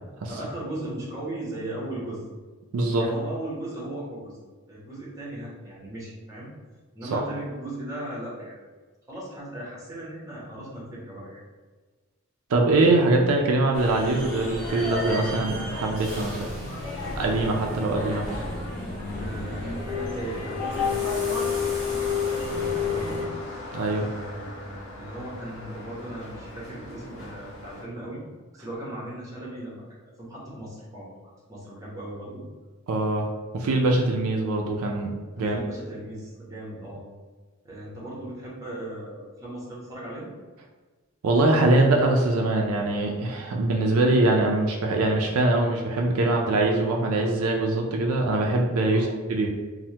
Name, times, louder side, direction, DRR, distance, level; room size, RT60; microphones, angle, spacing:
voice 1, 0.3-2.2 3.0-4.4 4.7-6.5 6.9-8.6 9.1-11.4 19.2-21.4 22.3-23.2 23.8-28.2 28.5-29.8 30.2-31.1 31.5-32.4 35.3-37.0 37.6-40.3 48.9-49.1, right 1 dB, 15° right, -6 dB, 0.8 m, -37 dB
voice 2, 2.7-3.1 7.1-7.2 12.5-16.4 17.2-18.2 23.7-24.1 32.9-33.3 33.5-35.1 35.4-35.6 41.2-49.5, right 2 dB, 80° right, 1 dB, 0.4 m, -23 dB
sound 1, 13.7-23.2, left 4 dB, 15° left, 1.5 m, -30 dB
sound 2, 14.0-23.4, left 2 dB, 45° left, 0.4 m, -42 dB
sound 3, 20.7-27.9, left 1 dB, 70° left, 0.8 m, -40 dB
3.2 x 2.1 x 2.8 m, 1.3 s
head